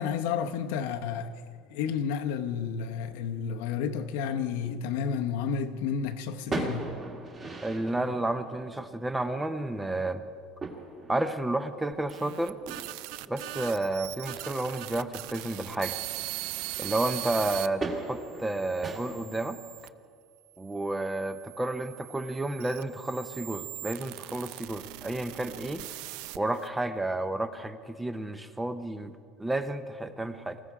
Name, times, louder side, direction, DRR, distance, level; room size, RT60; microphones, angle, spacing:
voice 1, 0.0-1.3 1.7-6.9, left 7 dB, 85° left, 0.9 m, -31 dB
sound 1, 6.4-16.7 17.0-19.0, right 3 dB, 25° right, 1.7 m, -40 dB
voice 2, 7.6-10.2 11.1-12.6 13.3-16.0 16.8-19.6 20.6-25.9 26.4-30.6, right 2 dB, 5° right, 0.6 m, -31 dB
sound 2, 11.9-17.7 18.3-19.9 20.7-26.7, right 16 dB, 70° right, 0.4 m, -40 dB
19.5 x 15.0 x 4.8 m
cardioid pair, 150°, 0 cm